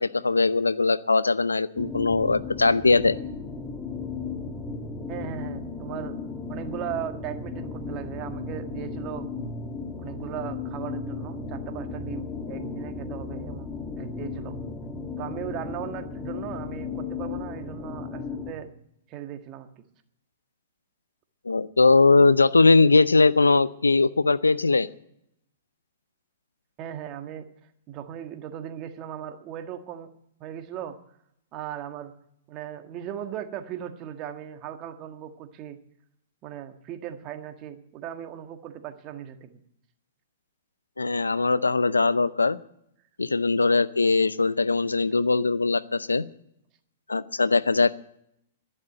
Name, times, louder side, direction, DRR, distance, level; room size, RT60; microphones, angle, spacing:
voice 1, 0.0-3.2 21.5-24.9 41.0-42.6 43.2-46.2 47.1-47.9, left 3 dB, 90° left, 17 dB, 0.6 m, -20 dB
sound 1, 1.8-18.5, left 4 dB, 15° left, 2.2 m, -35 dB
voice 2, 5.1-6.2 6.5-9.2 10.0-14.6 15.2-18.7 19.1-19.8 26.8-27.5 27.9-30.1 30.4-31.0 31.5-32.1 32.5-35.8 36.4-39.6, right 10 dB, 35° right, 7 dB, 1.6 m, -37 dB
12.0 x 11.0 x 7.8 m, 0.75 s
hypercardioid pair, 110°, 0 cm